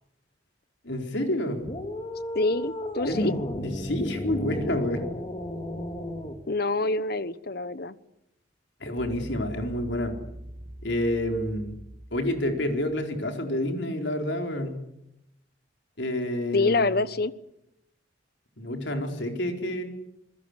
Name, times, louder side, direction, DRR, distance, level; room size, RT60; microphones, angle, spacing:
voice 1, 0.8-1.6 3.1-5.0 8.8-10.1 10.8-11.7 12.1-14.8 16.0-17.0 18.6-19.8, left 1 dB, 70° left, 4 dB, 4.5 m, -29 dB
sound 1, 1.6-6.4, left 1 dB, 30° left, 2.5 m, -34 dB
voice 2, 2.3-3.3 6.5-7.9 16.5-17.3, left 2 dB, 55° left, 15 dB, 1.1 m, -26 dB
sound 2, 9.0-13.1, right 1 dB, 35° right, 3.6 m, -43 dB
27.0 x 21.0 x 8.2 m, 0.83 s
head